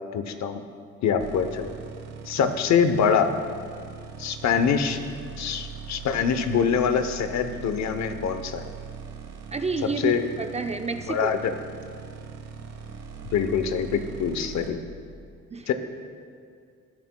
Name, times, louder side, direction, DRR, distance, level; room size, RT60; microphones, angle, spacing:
voice 1, 0.1-0.6 1.0-1.7 2.3-3.3 4.2-5.0 5.4-8.6 10.0-10.2 11.1-11.5 13.3-14.8 15.7-15.8, left 7 dB, 65° left, 9 dB, 0.8 m, -24 dB
sound 1, 1.2-14.7, right 6 dB, 60° right, 1.1 m, -41 dB
voice 2, 9.5-11.3 15.5-15.7, right 4 dB, 20° right, 7 dB, 0.4 m, -30 dB
16.5 x 9.2 x 2.2 m, 2.2 s
cardioid pair, 90°, 30 cm